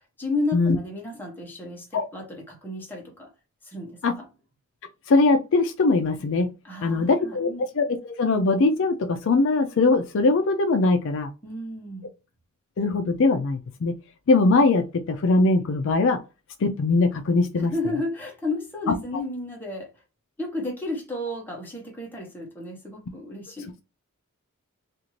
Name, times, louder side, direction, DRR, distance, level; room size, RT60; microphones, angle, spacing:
voice 1, 0.2-3.3 3.6-4.3 6.6-7.7 11.4-12.1 17.6-19.9 20.4-23.7, left 2 dB, 10° left, 0.9 m, -32 dB
voice 2, 5.1-6.5 6.8-7.5 7.8-11.3 12.8-13.9 14.3-16.2 16.6-17.7, left 3 dB, 60° left, 0.4 m, -21 dB
2.6 x 2.4 x 3.0 m
head